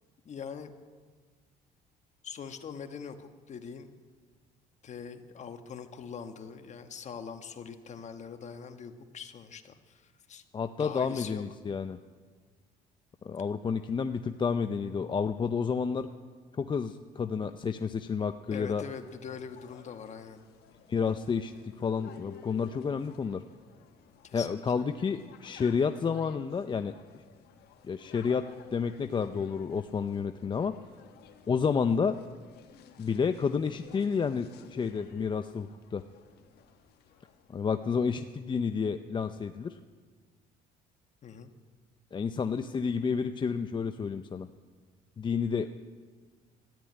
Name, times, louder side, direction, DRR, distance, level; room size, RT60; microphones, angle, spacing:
voice 1, 0.2-0.7 2.2-3.9 4.8-10.4 10.8-11.4 18.5-20.4 24.2-24.5 41.2-41.5, left 6 dB, 45° left, 7 dB, 1.3 m, -43 dB
voice 2, 10.5-12.0 13.2-16.1 16.6-18.8 20.9-23.4 24.3-26.9 27.8-30.7 31.5-32.2 33.0-36.0 37.5-39.8 42.1-44.5 45.2-45.8, left 6 dB, 30° left, 8 dB, 0.5 m, -30 dB
sound 1, 18.7-38.0, left 8 dB, 70° left, 1.4 m, -54 dB
13.5 x 10.5 x 9.3 m, 1.5 s
cardioid pair, 110°, 17 cm